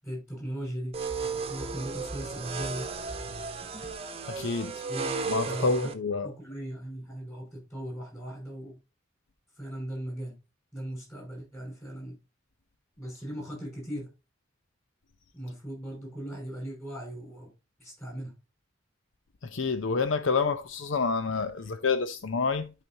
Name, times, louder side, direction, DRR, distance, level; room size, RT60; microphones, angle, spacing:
voice 1, 0.0-1.0 1.4-2.9 4.9-5.1 5.4-5.9 6.2-8.7 9.5-10.3 10.7-12.2 13.0-14.1 15.3-17.5 17.8-18.3, right 1 dB, 15° left, 5.6 m, -38 dB
sound 1, 0.9-5.9, right 4 dB, 30° right, 1.0 m, -34 dB
voice 2, 4.3-4.8 5.3-6.3 19.4-22.7, left 4 dB, 75° left, 0.7 m, -28 dB
12.0 x 5.0 x 2.8 m
head